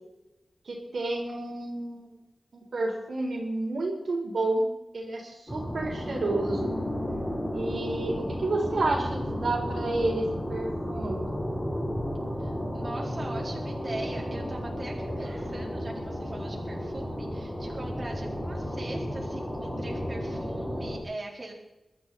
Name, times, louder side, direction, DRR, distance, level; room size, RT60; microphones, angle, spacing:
voice 1, 0.6-2.2 2.5-4.7 4.9-6.8 7.5-11.4, right 2 dB, 75° right, 0 dB, 4.2 m, -30 dB
sound 1, 5.5-21.0, equal, 5° left, 5.7 m, -33 dB
voice 2, 12.4-21.5, right 2 dB, 35° right, -2 dB, 4.1 m, -41 dB
23.0 x 12.5 x 4.2 m, 0.96 s
wide cardioid pair, 120°, 0 cm